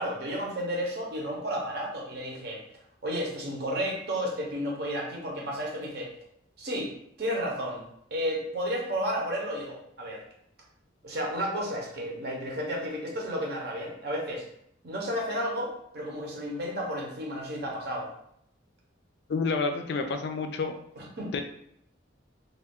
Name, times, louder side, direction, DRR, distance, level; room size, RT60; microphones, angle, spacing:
voice 1, 0.0-2.6 3.0-6.1 6.6-6.9 7.2-7.8 8.1-10.2 11.0-14.5 14.8-18.1 21.0-21.4, equal, 55° right, -2 dB, 0.8 m, -32 dB
voice 2, 19.3-20.7 21.3-21.4, left 4 dB, 60° left, 6 dB, 0.3 m, -29 dB
2.4 x 2.3 x 3.5 m, 0.72 s
head